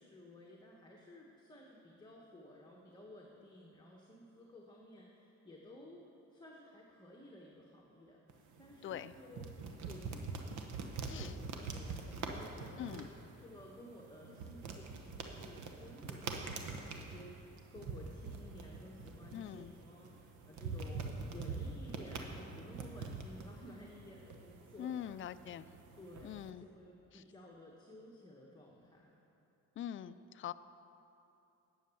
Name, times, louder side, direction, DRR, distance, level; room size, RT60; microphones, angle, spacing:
voice 1, 0.0-9.5 9.8-10.5 11.0-25.2 25.9-29.2, left 1 dB, 15° left, -2 dB, 1.3 m, -55 dB
sound 1, 8.3-26.5, right 4 dB, 75° right, 1.1 m, -45 dB
voice 2, 8.8-9.1 11.0-11.3 12.8-13.1 19.3-19.7 24.8-25.7 26.2-26.7 27.1-27.2 29.8-30.5, left 10 dB, 45° left, 13 dB, 0.4 m, -43 dB
10.0 x 7.2 x 7.0 m, 2.8 s
cardioid pair, 90°, 30 cm